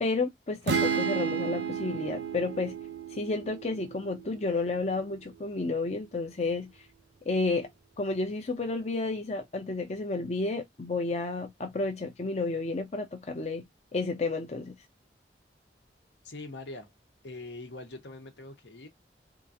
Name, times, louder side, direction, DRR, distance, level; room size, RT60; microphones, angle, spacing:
voice 1, 0.0-2.8 3.1-6.7 7.3-7.7 8.0-13.7 13.9-14.7, left 3 dB, 35° left, 0.5 m, -31 dB
sound 1, 0.7-4.4, right 6 dB, 70° right, 0.6 m, -32 dB
voice 2, 16.2-16.9 17.2-18.9, left 2 dB, 80° left, 1.0 m, -43 dB
3.7 x 2.4 x 2.6 m
head